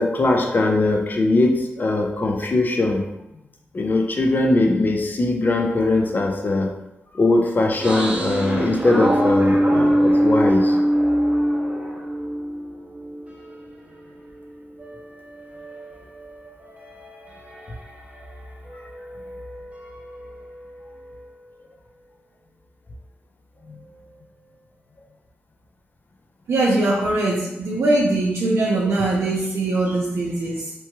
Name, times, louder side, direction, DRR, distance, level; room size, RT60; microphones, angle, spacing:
voice 1, 0.0-3.1 3.7-6.7 7.1-10.8 23.7-23.8, left 2 dB, 45° left, 2 dB, 0.5 m, -20 dB
sound 1, 7.8-13.8 14.2-18.4 18.7-21.3, right 1 dB, 30° right, 0.7 m, -24 dB
voice 2, 26.5-30.7, right 2 dB, 90° right, -5 dB, 0.5 m, -21 dB
3.0 x 2.3 x 2.9 m, 0.91 s
wide cardioid pair, 90°, 5 cm